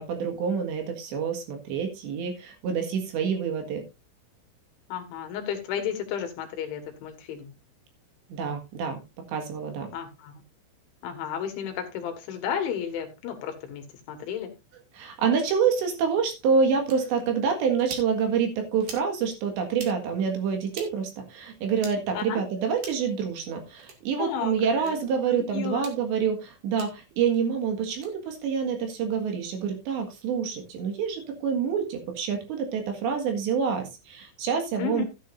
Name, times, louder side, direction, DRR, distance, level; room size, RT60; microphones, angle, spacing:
voice 1, 0.0-3.8 8.3-9.0 9.3-9.9 15.0-35.0, right 6 dB, 65° right, 4 dB, 3.7 m, -27 dB
voice 2, 4.9-7.5 9.9-10.3 11.0-14.5 22.1-22.5 24.2-25.0 25.3-25.9 34.8-35.0, left 8 dB, 70° left, 6 dB, 3.8 m, -33 dB
sound 1, 16.9-17.0 17.8-18.1 18.8-19.1 19.7-19.9 20.7-20.9 21.8-22.0 22.8-23.1 23.8-24.0 24.8-24.9 25.7-26.0 26.8-26.9 27.9-28.1, right 4 dB, 50° right, 3.2 m, -41 dB
13.5 x 9.9 x 2.6 m, 0.25 s
omnidirectional pair, 5.9 m